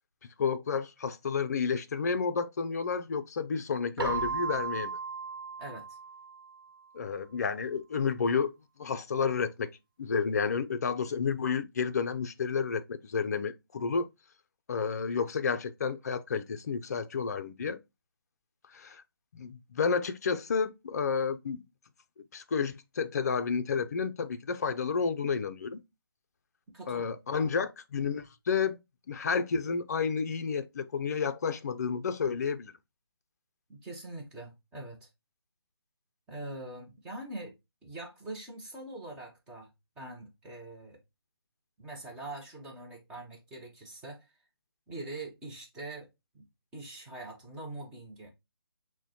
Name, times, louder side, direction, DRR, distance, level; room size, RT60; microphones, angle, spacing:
voice 1, 0.4-5.0 6.9-8.5 8.8-9.7 10.0-14.1 14.7-17.8 18.7-19.0 19.3-21.6 22.3-25.8 26.9-28.8 29.1-32.7, left 5 dB, 40° left, 0.5 m, -31 dB
Keyboard (musical), 4.0-6.7, right 4 dB, 60° right, 1.0 m, -35 dB
voice 2, 5.6-6.0 26.7-27.1 27.4-27.5 33.7-35.1 36.3-37.5 37.8-39.7 40.0-41.0 41.8-44.3 44.9-46.1 46.3-46.5 46.7-48.3, right 2 dB, 5° right, 0.6 m, -43 dB
6.3 x 2.1 x 2.9 m
hypercardioid pair, 165°, 13 cm